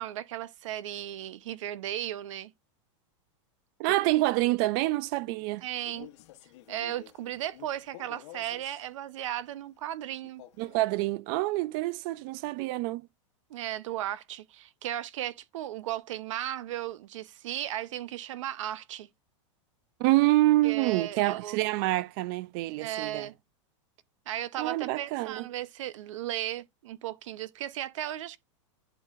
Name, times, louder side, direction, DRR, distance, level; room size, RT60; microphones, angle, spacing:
voice 1, 0.0-2.5 3.8-3.9 5.6-6.1 6.7-10.4 13.5-19.1 20.6-21.6 22.8-23.3 24.3-28.4, right 12 dB, 75° right, 0.7 m, -36 dB
voice 2, 3.8-5.6 10.6-13.1 20.0-23.3 24.6-25.5, right 18 dB, 45° right, 0.4 m, -27 dB
Male speech man speaking, 5.7-8.9 10.2-10.9, left 14 dB, 60° left, 1.0 m, -51 dB
11.0 x 3.8 x 2.4 m
supercardioid pair, 150°, 16 cm